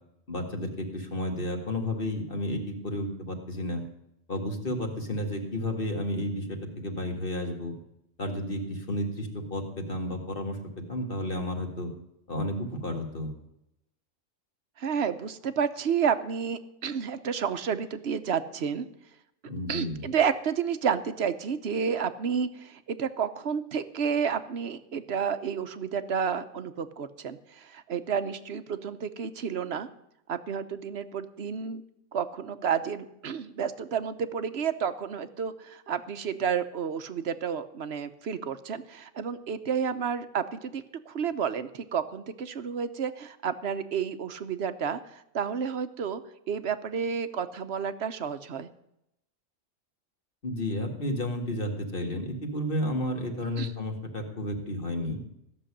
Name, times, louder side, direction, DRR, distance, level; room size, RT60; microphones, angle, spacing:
voice 1, 0.3-3.8 4.3-7.7 8.2-10.6 10.9-11.9 12.3-13.3 19.5-20.0 50.4-55.2, left 1 dB, 40° left, 3 dB, 2.3 m, -32 dB
voice 2, 14.8-18.9 19.7-29.9 30.3-31.8 32.1-46.2 46.5-48.7 53.6-53.7, right 7 dB, 55° right, 11 dB, 1.1 m, -31 dB
15.5 x 6.9 x 10.0 m, 0.82 s
omnidirectional pair, 1.4 m